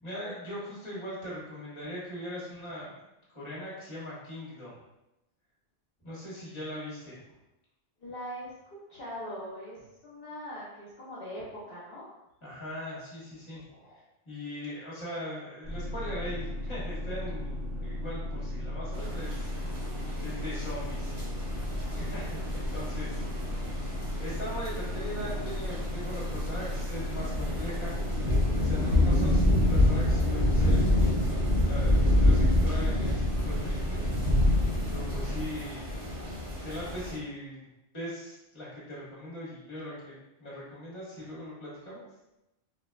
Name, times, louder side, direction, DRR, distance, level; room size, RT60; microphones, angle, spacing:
voice 1, 0.0-3.0 3.3-4.8 6.0-7.2 12.4-13.6 14.3-19.5 19.8-19.9 20.2-21.2 21.9-23.2 24.2-27.9 28.5-34.1 34.5-35.9 36.6-37.6 37.9-40.1 40.4-42.0, equal, 30° left, -8 dB, 1.1 m, -40 dB
voice 2, 8.0-8.5 8.9-11.4 11.7-12.0 13.7-14.0 23.0-23.3, equal, 60° left, -9 dB, 1.0 m, -41 dB
sound 1, 15.6-35.4, left 1 dB, 10° right, 1.0 m, -35 dB
sound 2, 18.9-37.2, left 1 dB, 35° right, 0.7 m, -28 dB
3.7 x 2.2 x 2.2 m, 0.93 s
omnidirectional pair, 1.1 m